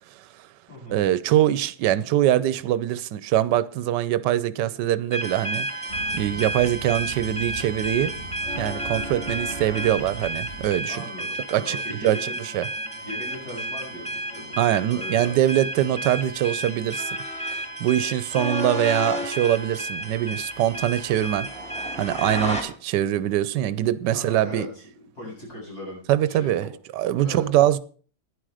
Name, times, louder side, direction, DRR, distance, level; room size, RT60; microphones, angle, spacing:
voice 1, 0.2-0.5 0.9-8.1 8.6-11.0 11.5-12.7 14.6-17.2 17.5-21.5 22.0-24.7 26.1-27.8, right 12 dB, 75° right, 1.3 m, -23 dB
voice 2, 0.7-1.0 10.9-12.3 13.0-14.6 14.9-15.4 24.1-24.8 25.1-26.5 27.2-27.5, equal, 60° left, 8.6 m, -39 dB
sound 1, 5.1-22.6, right 1 dB, 5° left, 2.3 m, -31 dB
sound 2, 5.9-10.8, right 2 dB, 30° left, 5.5 m, -39 dB
Bowed string instrument, 12.2-17.1, left 1 dB, 75° left, 4.2 m, -50 dB
11.5 x 10.5 x 4.9 m
omnidirectional pair, 1.9 m